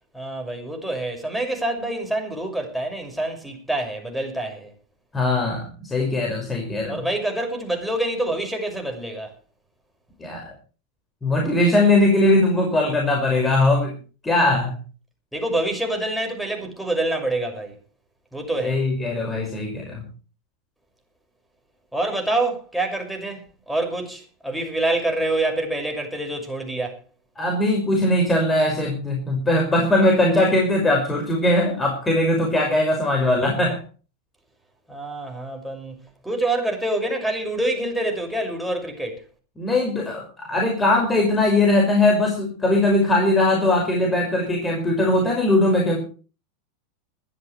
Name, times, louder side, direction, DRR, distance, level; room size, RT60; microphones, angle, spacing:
voice 1, 0.1-4.7 6.9-9.3 15.3-17.8 18.3-18.8 21.9-23.4 23.7-27.0 34.9-36.0 36.2-39.2, right 2 dB, ahead, 6.2 m, -26 dB
voice 2, 5.1-7.0 10.2-10.5 11.2-13.9 14.2-14.8 18.6-20.0 27.4-33.8 39.6-46.0, left 2 dB, 15° left, 5.9 m, -20 dB
20.5 x 14.0 x 3.3 m
figure-of-eight pair, 90°, 0 cm